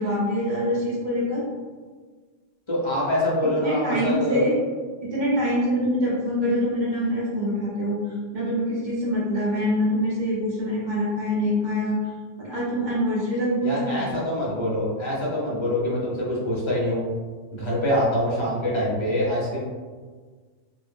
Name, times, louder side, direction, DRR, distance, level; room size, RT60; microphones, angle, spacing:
voice 1, 0.0-1.5 3.6-4.5 5.0-8.0 8.3-12.0 12.4-14.1, equal, 45° right, -7 dB, 0.8 m, -25 dB
voice 2, 2.7-4.5 13.6-17.0 17.5-19.6, left 1 dB, 30° left, -6 dB, 0.6 m, -25 dB
2.5 x 2.0 x 3.4 m, 1.5 s
omnidirectional pair, 1.2 m